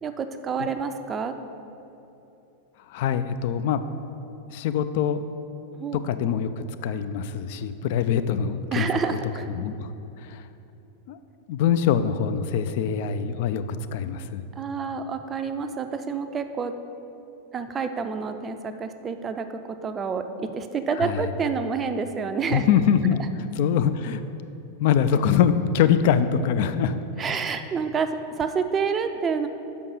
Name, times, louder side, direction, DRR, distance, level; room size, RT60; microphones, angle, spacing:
voice 1, 0.0-1.4 5.8-6.0 8.7-9.5 14.6-16.7 17.5-22.6 27.2-29.5, right 5 dB, 25° right, 8 dB, 0.4 m, -28 dB
voice 2, 2.9-3.8 4.5-5.3 5.9-9.2 9.5-9.9 10.2-10.4 11.1-11.2 11.5-14.4 21.0-21.3 22.5-24.2 24.8-27.4, left 8 dB, 50° left, 11 dB, 0.3 m, -24 dB
5.8 x 5.3 x 6.4 m, 2.9 s
figure-of-eight pair, 90°, 0 cm